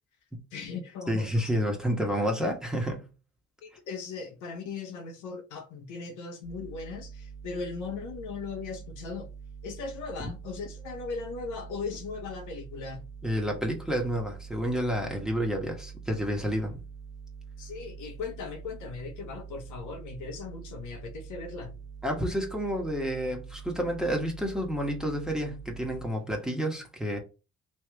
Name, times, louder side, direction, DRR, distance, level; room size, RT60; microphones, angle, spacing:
voice 1, 0.5-1.5 3.6-9.3 9.6-13.1 17.6-21.7, left 4 dB, 85° left, 1.0 m, -38 dB
voice 2, 1.1-3.1 13.2-16.8 22.0-27.2, equal, ahead, 1.3 m, -30 dB
sound 1, 6.4-26.1, right 6 dB, 25° right, 1.0 m, -45 dB
3.2 x 3.1 x 3.4 m
cardioid pair, 90°, 30 cm